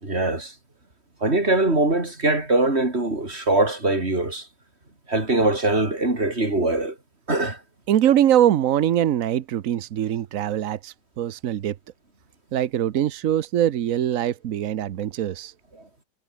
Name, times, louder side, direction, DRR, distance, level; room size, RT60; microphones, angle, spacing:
voice 1, 0.0-0.5 1.2-4.5 5.1-6.9 7.3-7.6, right 2 dB, 30° right, 4.9 m, -22 dB
voice 2, 7.9-11.7 12.5-15.5, right 11 dB, 65° right, 0.8 m, -22 dB
omnidirectional pair, 2.3 m